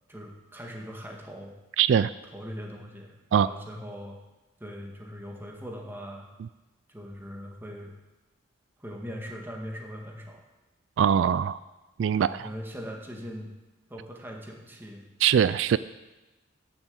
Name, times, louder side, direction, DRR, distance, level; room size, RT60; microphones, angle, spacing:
voice 1, 0.1-1.5 2.3-4.2 4.6-6.3 6.9-7.9 8.8-10.4 12.1-13.5 13.9-15.1, equal, 10° right, 0 dB, 1.8 m, -40 dB
voice 2, 1.8-2.1 3.3-3.5 11.0-11.6 12.0-12.5 15.2-15.8, right 8 dB, 75° right, 16 dB, 0.3 m, -22 dB
10.5 x 7.3 x 8.1 m, 1.1 s
head